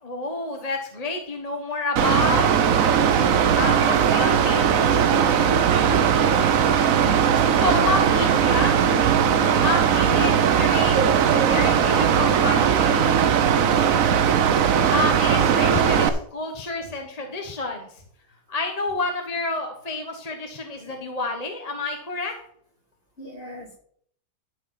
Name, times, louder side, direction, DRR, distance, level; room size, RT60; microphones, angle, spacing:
voice 1, 0.0-2.5 3.6-5.1 7.5-8.8 9.6-13.0 14.9-17.9 18.5-22.3, left 3 dB, 25° left, 3 dB, 1.1 m, -29 dB
Mechanical fan, 2.0-16.1, right 8 dB, 60° right, 1.1 m, -19 dB
voice 2, 3.5-4.0 10.1-10.4 23.2-23.8, left 1 dB, 45° left, -2 dB, 3.8 m, -40 dB
13.0 x 4.8 x 5.7 m, 0.64 s
omnidirectional pair, 1.7 m